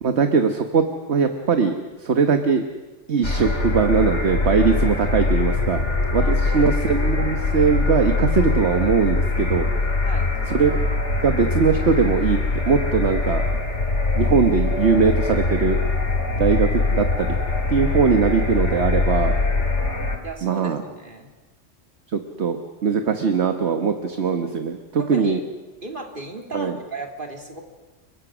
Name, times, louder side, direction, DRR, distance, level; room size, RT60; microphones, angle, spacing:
voice 1, 0.0-2.6 3.1-5.8 6.1-9.7 10.5-10.8 11.2-12.4 12.7-13.4 14.2-15.8 16.4-17.3 17.7-19.3 20.4-20.8 22.1-22.6 22.8-25.4 26.5-26.7, right 5 dB, 65° right, 7 dB, 1.6 m, -20 dB
sound 1, 3.2-20.2, left 3 dB, 70° left, 2.9 m, -22 dB
voice 2, 6.2-7.1 10.0-10.3 20.2-21.3 25.0-25.4 25.8-27.6, right 2 dB, 45° right, 3 dB, 3.2 m, -36 dB
30.0 x 24.0 x 6.3 m, 1.2 s
omnidirectional pair, 1.2 m